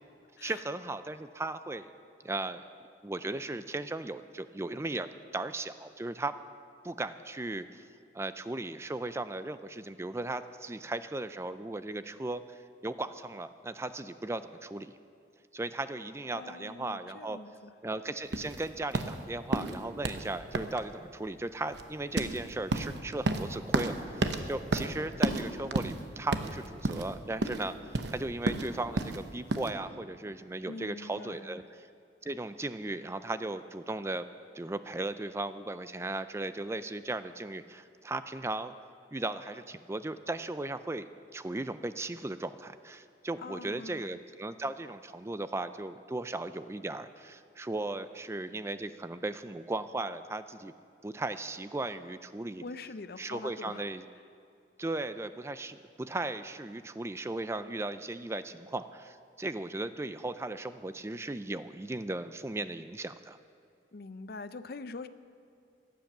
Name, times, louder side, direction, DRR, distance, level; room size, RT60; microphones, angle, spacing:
voice 1, 0.4-1.9 2.2-2.6 3.0-6.3 6.8-7.9 8.1-15.0 15.5-17.4 17.8-31.9 32.2-34.2 34.5-38.7 39.1-50.7 51.0-52.6 53.2-54.1 54.8-63.4, right 2 dB, 15° right, 12 dB, 0.4 m, -37 dB
voice 2, 16.3-17.7 30.6-31.6 43.4-44.2 52.6-53.8 63.9-65.1, left 3 dB, 60° left, 13 dB, 0.5 m, -44 dB
sound 1, 18.3-29.7, right 2 dB, 75° right, 0.9 m, -33 dB
15.5 x 10.5 x 7.3 m, 2.6 s
head